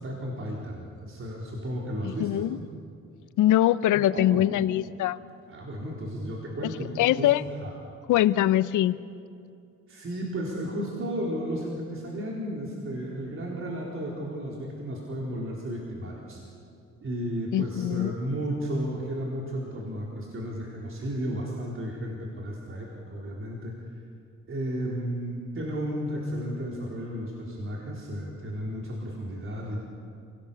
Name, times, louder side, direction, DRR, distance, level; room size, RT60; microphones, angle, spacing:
voice 1, 0.0-2.4 4.1-4.4 5.5-7.3 7.6-7.7 9.9-16.4 17.0-23.7 24.5-29.8, equal, 45° right, -2 dB, 4.0 m, -33 dB
voice 2, 2.0-2.6 3.4-5.2 7.0-7.4 8.1-9.0 17.5-18.1, left 13 dB, 80° left, 16 dB, 0.7 m, -23 dB
28.5 x 17.5 x 7.0 m, 2.4 s
cardioid pair, 90°, 30 cm